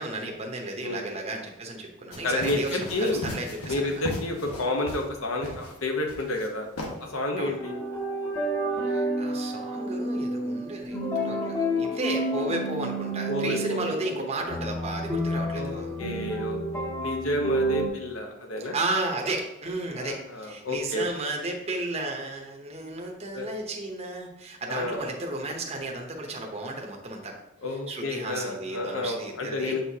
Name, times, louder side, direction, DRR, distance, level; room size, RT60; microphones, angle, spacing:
voice 1, 0.0-4.0 7.4-7.6 8.8-15.9 18.7-27.3 27.9-29.8, right 2 dB, 30° right, 1 dB, 0.8 m, -33 dB
voice 2, 0.8-1.1 2.2-3.2 3.7-6.7 7.0-7.7 13.3-13.9 15.5-18.8 20.0-21.1 23.3-23.5 24.7-25.1 27.6-29.8, left 2 dB, 65° left, 3 dB, 1.0 m, -30 dB
sound 1, 2.1-5.1 5.4-5.7 6.1-6.5 6.8-6.9, left 1 dB, 85° left, 1.3 m, -37 dB
sound 2, 7.6-17.9, right 1 dB, 10° left, 0.9 m, -30 dB
7.5 x 4.6 x 2.8 m, 0.88 s
head